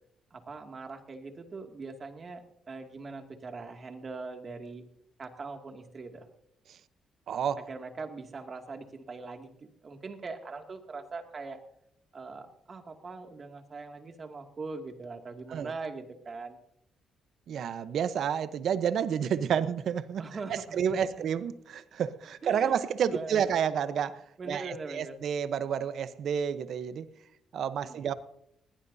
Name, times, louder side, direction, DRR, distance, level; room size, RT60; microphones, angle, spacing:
voice 1, 0.3-4.8 5.2-6.3 7.6-11.6 12.1-16.6 20.2-21.0 22.4-23.5 24.4-25.2 27.8-28.1, right 4 dB, 40° right, 4 dB, 2.4 m, -41 dB
voice 2, 7.3-7.7 15.5-15.7 17.5-20.2 20.5-27.1 27.5-28.1, right 8 dB, 65° right, 13 dB, 0.9 m, -30 dB
20.5 x 18.0 x 2.8 m, 0.75 s
cardioid pair, 90°, 0 cm